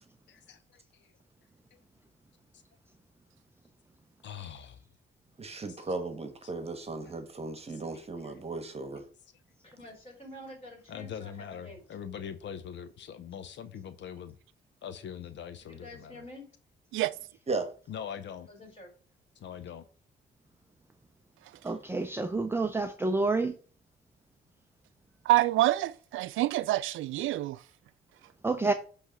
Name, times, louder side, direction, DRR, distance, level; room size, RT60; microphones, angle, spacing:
voice 1, 0.3-1.1 4.2-4.8 5.7-5.8 6.4-6.5 7.0-7.2 7.7-8.4 10.9-14.4 14.8-16.2 17.9-18.5 19.4-19.9, left 8 dB, 65° left, 0.7 m, -43 dB
voice 2, 5.4-9.0 17.5-17.6 28.6-28.7, right 3 dB, 30° right, 1.3 m, -36 dB
voice 3, 9.6-11.8 15.6-16.5 18.5-18.9, left 1 dB, 30° left, 4.0 m, -48 dB
voice 4, 21.6-23.6 28.4-28.7, right 3 dB, 10° right, 0.6 m, -28 dB
voice 5, 25.3-27.6, right 16 dB, 85° right, 0.4 m, -26 dB
7.9 x 3.3 x 6.2 m
cardioid pair, 90°, 20 cm